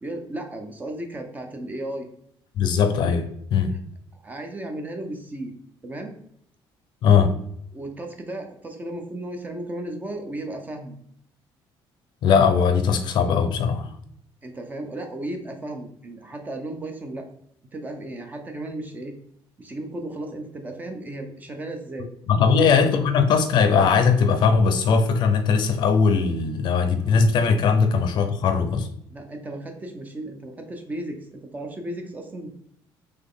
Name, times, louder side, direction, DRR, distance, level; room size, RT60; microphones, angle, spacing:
voice 1, 0.0-2.1 4.1-5.5 5.8-6.1 7.7-11.0 14.4-17.3 17.7-19.1 19.6-22.1 22.4-22.8 29.1-32.5, right 1 dB, 20° right, 5 dB, 0.5 m, -35 dB
voice 2, 2.6-3.3 3.5-3.8 7.0-7.4 12.2-13.9 22.3-28.9, left 5 dB, 55° left, 8 dB, 0.5 m, -19 dB
4.0 x 3.2 x 3.6 m, 0.71 s
cardioid pair, 170°, 9 cm